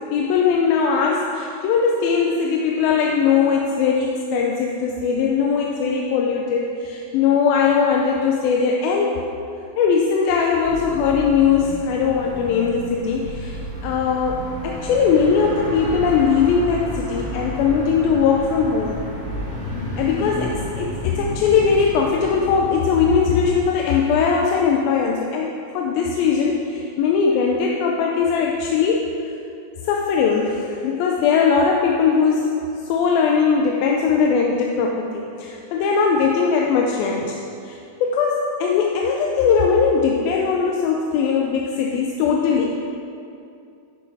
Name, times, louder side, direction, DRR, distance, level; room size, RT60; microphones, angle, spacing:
voice 1, 0.1-9.1 9.8-19.0 19.7-29.1 29.8-32.6 32.9-42.7, left 6 dB, 85° left, 0 dB, 2.4 m, -20 dB
sound 1, 10.6-23.5, left 1 dB, 20° right, 1.3 m, -32 dB
10.5 x 6.0 x 4.7 m, 2.5 s
omnidirectional pair, 4.2 m